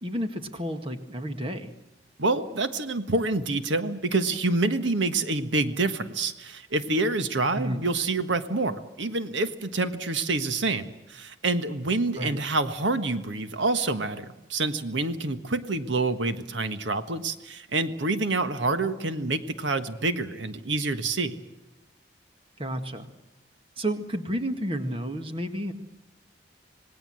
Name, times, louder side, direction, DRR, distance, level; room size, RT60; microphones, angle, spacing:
voice 1, 0.0-1.7 7.5-7.9 12.2-12.4 22.6-23.1 23.8-25.7, equal, 30° right, 7 dB, 1.9 m, -31 dB
voice 2, 2.2-21.4, right 3 dB, 80° right, 10 dB, 1.5 m, -27 dB
27.0 x 19.5 x 7.7 m, 0.99 s
head